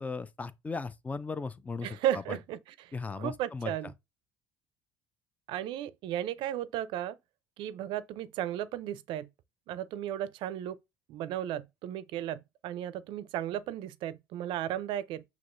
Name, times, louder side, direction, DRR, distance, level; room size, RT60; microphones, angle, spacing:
voice 1, 0.0-2.4 2.9-3.7, left 4 dB, 15° left, 0.4 m, -37 dB
voice 2, 1.8-3.9 5.5-7.2 7.6-9.3 9.7-10.8 11.1-15.2, right 11 dB, 70° right, 0.4 m, -35 dB
5.9 x 2.8 x 2.5 m
cardioid pair, 105°, 9 cm